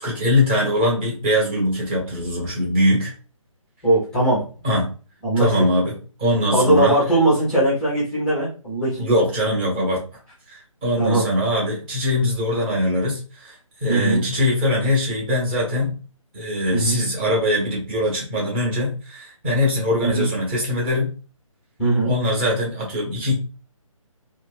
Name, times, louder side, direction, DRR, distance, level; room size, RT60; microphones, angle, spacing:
voice 1, 0.0-3.1 4.6-4.9 5.4-7.2 9.0-10.0 10.5-13.6 13.8-15.9 16.3-21.1 22.0-23.3, left 1 dB, 20° right, -3 dB, 1.0 m, -22 dB
voice 2, 3.8-4.4 5.2-5.5 6.5-9.1 11.0-11.2 13.9-14.2 16.7-17.0 20.0-20.3 21.8-22.2, right 1 dB, 5° left, -7 dB, 0.5 m, -19 dB
2.5 x 2.4 x 3.4 m, 0.36 s
figure-of-eight pair, 145°, 18 cm